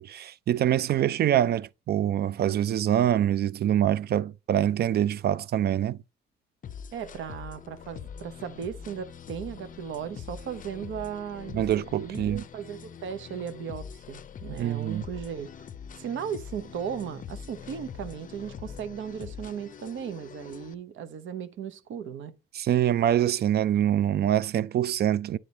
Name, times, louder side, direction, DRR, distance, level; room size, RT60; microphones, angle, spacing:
voice 1, 0.0-6.0 11.5-12.4 14.6-15.0 22.5-25.4, right 11 dB, 55° right, 0.4 m, -25 dB
sound 1, 6.6-20.7, left 7 dB, 40° left, 0.5 m, -43 dB
voice 2, 6.9-11.6 12.0-15.5 16.0-22.3, right 8 dB, 75° right, 0.9 m, -36 dB
9.4 x 3.8 x 4.1 m
cardioid pair, 90°, 20 cm